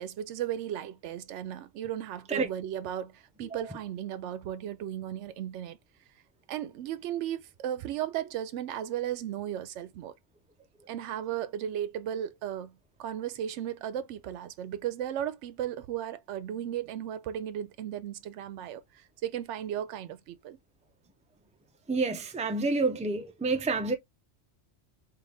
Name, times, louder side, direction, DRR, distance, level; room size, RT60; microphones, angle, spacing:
voice 1, 0.0-5.8 6.5-10.1 10.9-20.6, right 10 dB, 75° right, 0.9 m, -35 dB
voice 2, 21.9-23.9, right 3 dB, 10° right, 0.4 m, -29 dB
3.8 x 3.1 x 3.3 m
omnidirectional pair, 1.2 m